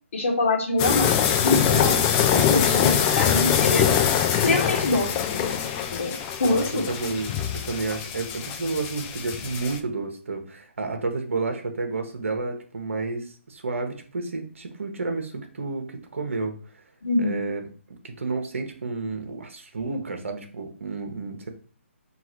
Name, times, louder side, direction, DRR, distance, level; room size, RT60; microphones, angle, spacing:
voice 1, 0.1-2.0 2.3-3.8 4.4-5.5 5.9-6.8 17.0-17.4, left 2 dB, 70° left, 0 dB, 1.6 m, -25 dB
sound 1, 0.8-9.8, left 9 dB, 20° left, 0.4 m, -23 dB
voice 2, 6.4-16.6 17.2-17.6 18.0-21.5, right 3 dB, 70° right, 4 dB, 1.2 m, -31 dB
3.8 x 2.5 x 4.5 m, 0.42 s
hypercardioid pair, 155°, 7 cm